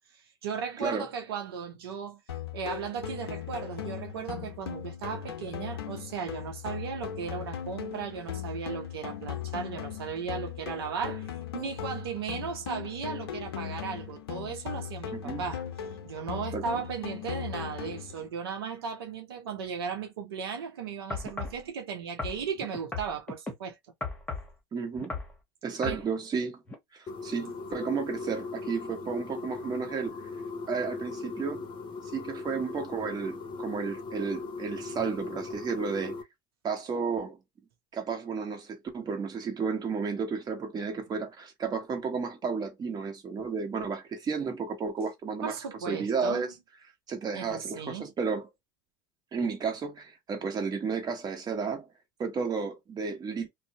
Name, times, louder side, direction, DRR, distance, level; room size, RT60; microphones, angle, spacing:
voice 1, 0.1-2.2 2.5-15.6 16.0-23.8 25.8-26.0 45.4-46.4 47.3-48.1, right 6 dB, 85° right, 0.6 m, -36 dB
voice 2, 0.8-1.1 15.1-15.4 16.5-16.6 24.7-25.1 25.6-26.6 26.9-30.2 30.7-31.6 32.1-36.2 36.6-37.4 37.9-45.5 45.9-46.5 47.1-48.5 49.3-51.9 52.2-53.5, right 5 dB, 35° right, 1.1 m, -32 dB
sound 1, 2.3-18.3, left 9 dB, 90° left, 0.5 m, -38 dB
sound 2, 21.1-21.6 22.2-23.5 24.0-24.5 25.0-25.3 25.8-26.0 26.7-26.8, left 3 dB, 10° left, 1.0 m, -36 dB
sound 3, 27.1-36.2, left 3 dB, 40° left, 0.6 m, -39 dB
2.6 x 2.0 x 2.6 m
hypercardioid pair, 85°, 12 cm